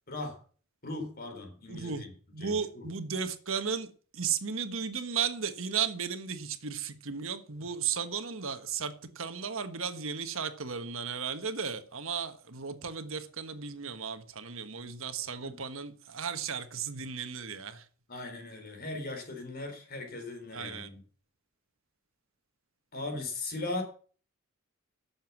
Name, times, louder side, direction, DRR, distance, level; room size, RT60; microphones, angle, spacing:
voice 1, 0.8-2.1 2.4-2.9 15.4-15.6 18.1-21.0 22.9-23.8, left 2 dB, 45° left, 3.8 m, -38 dB
voice 2, 1.7-2.0 2.3-17.8 20.5-20.9, right 6 dB, 65° right, 1.4 m, -35 dB
12.0 x 7.3 x 7.2 m
head